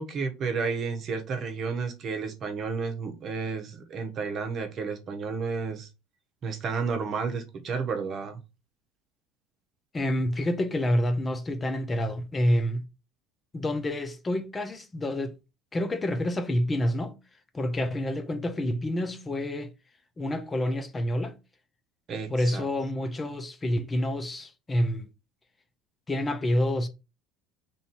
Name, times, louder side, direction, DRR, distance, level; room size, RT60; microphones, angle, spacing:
voice 1, 0.0-5.9 6.4-8.4 22.1-22.6, right 5 dB, 45° right, 1.0 m, -31 dB
voice 2, 9.9-12.8 13.5-15.3 15.7-17.1 17.5-19.7 20.2-21.3 22.3-25.1 26.1-26.9, left 1 dB, 25° left, 0.6 m, -28 dB
3.1 x 2.7 x 4.4 m
hypercardioid pair, 75°, 0 cm